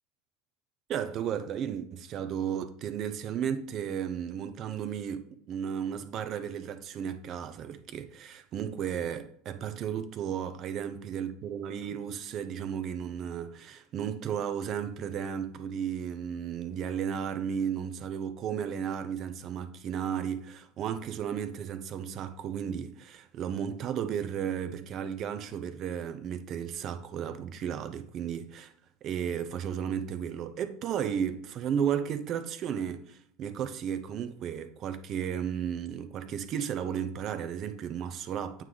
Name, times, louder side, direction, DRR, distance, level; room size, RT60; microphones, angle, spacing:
voice 1, 0.9-28.7 29.0-38.6, right 8 dB, 45° right, 0.7 m, -34 dB
8.9 x 3.3 x 3.9 m
hypercardioid pair, 85°, 0 cm